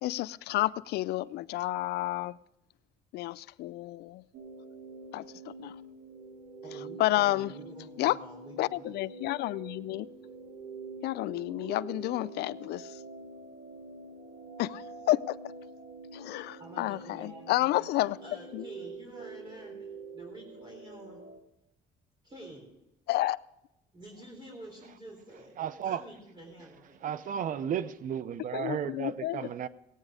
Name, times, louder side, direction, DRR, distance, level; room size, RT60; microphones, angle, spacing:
voice 1, 0.0-2.4 3.1-4.2 5.1-5.3 5.6-5.8 7.0-7.5 8.0-8.2 8.6-10.1 11.0-13.0 14.6-15.4 16.1-18.2 18.5-18.6 23.1-23.4 28.5-29.4, left 16 dB, 75° left, 0.4 m, -30 dB
sound 1, 4.3-21.4, right 3 dB, 80° right, 1.8 m, -46 dB
voice 2, 6.6-8.9 11.5-12.1 16.6-19.9 20.1-21.2 22.2-22.7 23.9-25.5 25.8-27.0, right 1 dB, 25° right, 3.7 m, -49 dB
voice 3, 25.6-26.0 27.0-29.7, right 9 dB, 50° right, 0.7 m, -33 dB
18.0 x 8.9 x 4.9 m
cardioid pair, 110°, 17 cm